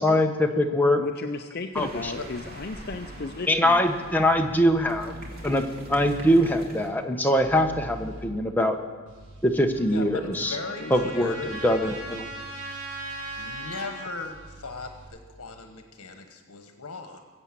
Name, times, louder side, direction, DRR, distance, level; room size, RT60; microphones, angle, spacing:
voice 1, 0.0-1.0 1.7-2.1 3.5-5.1 5.4-8.8 9.4-10.6 10.9-12.3, left 1 dB, 10° left, 3 dB, 1.0 m, -23 dB
voice 2, 1.0-3.8 10.8-11.1, left 3 dB, 45° left, 7 dB, 0.5 m, -35 dB
sound 1, 1.7-6.9, right 1 dB, 40° right, 2.6 m, -43 dB
sound 2, 2.2-3.1 3.9-6.5 7.3-8.3 9.1-10.0 10.8-13.4 14.2-15.1, equal, 65° right, 5.7 m, -46 dB
Trumpet, 9.7-14.2, right 2 dB, 10° right, 5.6 m, -39 dB
voice 3, 9.9-12.0 13.4-17.2, left 3 dB, 75° left, 5 dB, 1.3 m, -38 dB
21.5 x 8.3 x 7.5 m, 1.4 s
head